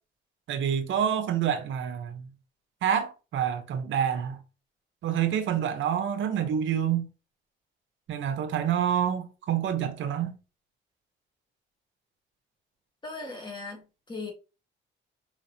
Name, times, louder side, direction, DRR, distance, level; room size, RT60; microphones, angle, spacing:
voice 1, 0.5-2.3 2.8-4.4 5.0-7.1 8.1-10.3, right 9 dB, 75° right, 0.9 m, -27 dB
voice 2, 13.0-14.3, left 3 dB, 20° left, 1.6 m, -38 dB
5.0 x 3.1 x 2.8 m
cardioid pair, 90°, 20 cm